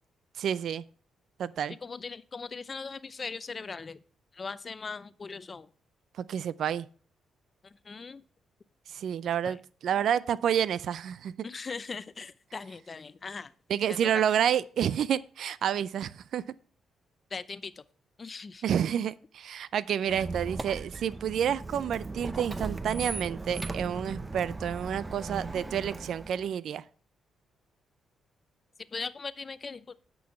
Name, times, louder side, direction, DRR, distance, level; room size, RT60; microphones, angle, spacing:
voice 1, 0.4-0.8 1.4-1.7 6.2-6.9 8.9-9.6 9.8-11.3 13.7-16.4 18.6-26.8, right 9 dB, 70° right, 0.4 m, -29 dB
voice 2, 1.7-4.0 4.3-5.7 7.6-8.2 9.4-9.6 11.4-13.5 13.9-14.1 17.3-17.8 18.2-18.6 20.1-20.2 28.9-30.0, left 4 dB, 35° left, 0.6 m, -40 dB
Squeak, 20.1-26.5, right 3 dB, 20° right, 0.8 m, -38 dB
9.3 x 6.2 x 5.8 m
cardioid pair, 90°, 0 cm